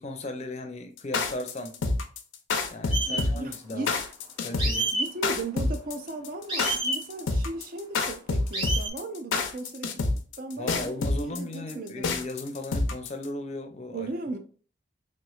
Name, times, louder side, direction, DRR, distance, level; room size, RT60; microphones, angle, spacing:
voice 1, 0.0-1.8 2.7-3.9 4.4-4.9 10.6-14.1, left 1 dB, 35° left, 0.5 m, -36 dB
sound 1, 1.0-13.2, left 3 dB, 85° left, 0.5 m, -27 dB
sound 2, 2.9-3.2 4.6-5.1 6.5-7.0 8.5-8.9, right 2 dB, 25° right, 0.8 m, -28 dB
voice 2, 3.1-4.0 4.9-10.1 10.4-11.0 11.2-12.1 13.9-14.4, right 2 dB, 45° right, 0.5 m, -36 dB
3.3 x 3.1 x 2.3 m
head